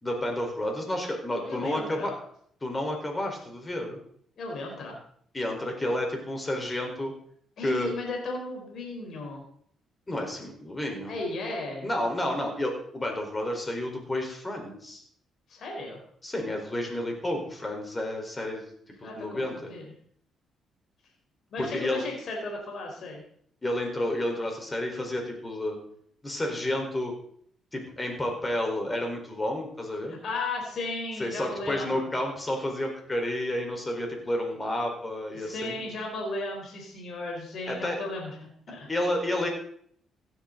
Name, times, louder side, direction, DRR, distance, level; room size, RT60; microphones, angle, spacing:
voice 1, 0.0-2.1 2.6-4.0 5.3-7.1 7.6-7.9 10.1-11.2 11.8-15.0 16.2-18.7 19.0-19.7 21.6-22.0 23.6-25.8 26.2-27.1 27.7-30.2 31.2-35.8 37.7-38.0 38.9-39.5, left 1 dB, 20° left, 2 dB, 4.4 m, -30 dB
voice 2, 1.3-2.1 4.4-5.0 7.6-9.4 11.1-11.9 15.5-16.0 19.0-19.9 21.5-23.2 30.1-32.1 35.3-38.9, left 2 dB, 60° left, 0 dB, 4.2 m, -35 dB
16.5 x 10.5 x 4.0 m, 0.63 s
cardioid pair, 90°, 0 cm